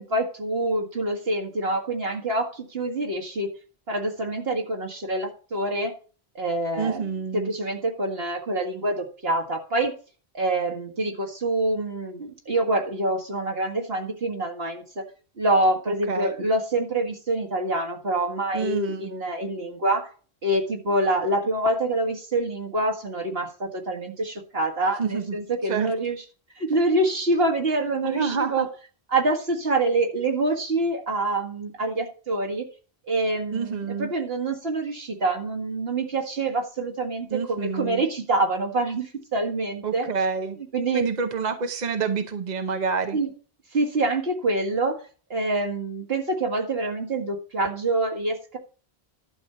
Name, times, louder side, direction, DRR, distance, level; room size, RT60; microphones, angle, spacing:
voice 1, 0.0-3.5 3.9-5.9 6.4-9.9 10.3-15.0 15.4-20.1 20.4-26.2 26.6-28.7 29.1-32.7 33.1-40.1 40.7-41.0 43.1-43.3 43.7-45.0 45.3-48.6, right 2 dB, 70° right, 2 dB, 2.1 m, -26 dB
voice 2, 6.8-7.5 16.1-16.3 18.5-19.1 25.0-25.4 25.6-25.9 28.0-28.7 33.5-34.1 37.3-38.0 39.8-40.6 40.9-43.2, right 5 dB, 45° right, 7 dB, 0.9 m, -27 dB
11.5 x 5.1 x 7.0 m, 0.39 s
omnidirectional pair, 1.1 m